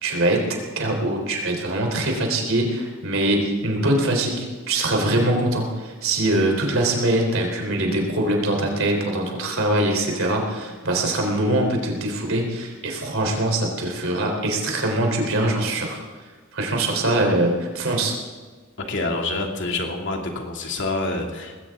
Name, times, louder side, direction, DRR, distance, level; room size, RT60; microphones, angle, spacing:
voice 1, 0.0-16.0 16.5-18.1, right 1 dB, 65° right, 1 dB, 3.8 m, -23 dB
voice 2, 18.9-21.6, left 2 dB, 60° left, 1 dB, 2.6 m, -27 dB
20.0 x 17.0 x 3.8 m, 1.4 s
head